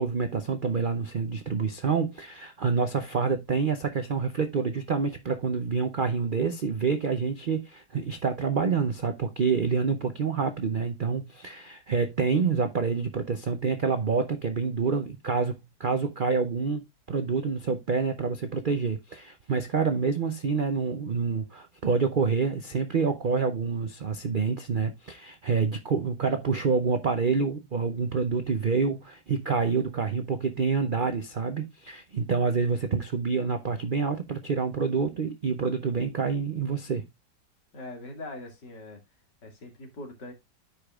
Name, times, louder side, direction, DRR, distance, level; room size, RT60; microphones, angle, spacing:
voice 1, 0.0-37.0, right 5 dB, 80° right, 0.4 m, -27 dB
voice 2, 37.7-39.0 39.4-40.3, left 2 dB, 75° left, 2.8 m, -41 dB
13.5 x 5.0 x 2.3 m
omnidirectional pair, 1.9 m